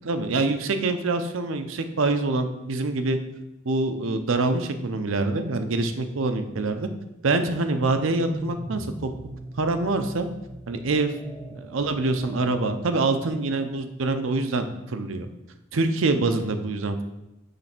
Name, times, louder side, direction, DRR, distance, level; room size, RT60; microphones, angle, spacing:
voice 1, 0.0-3.2 3.6-6.9 7.2-9.1 9.6-10.3 10.7-11.1 11.5-15.3 15.7-17.0, right 3 dB, 80° right, 8 dB, 0.6 m, -25 dB
sound 1, 7.6-13.9, right 1 dB, 5° left, 0.7 m, -41 dB
6.6 x 3.3 x 5.9 m, 0.94 s
head